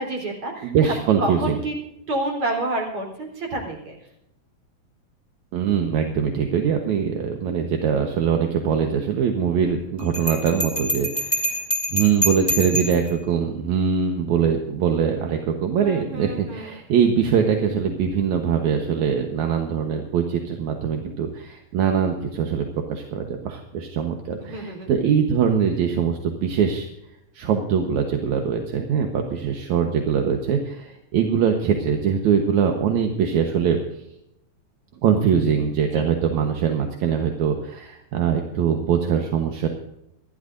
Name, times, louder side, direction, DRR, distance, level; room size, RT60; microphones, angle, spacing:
voice 1, 0.0-0.9 1.2-1.7 2.1-3.9 15.8-16.7 24.5-24.9 35.9-36.0, right 2 dB, 50° right, 1 dB, 4.8 m, -29 dB
voice 2, 0.6-1.6 5.5-11.6 11.9-26.9 27.3-33.8 35.0-39.7, right 7 dB, 75° right, 4 dB, 2.5 m, -22 dB
Bell, 10.1-13.1, equal, 10° left, 2.1 m, -25 dB
27.0 x 12.5 x 2.6 m, 0.82 s
omnidirectional pair, 3.3 m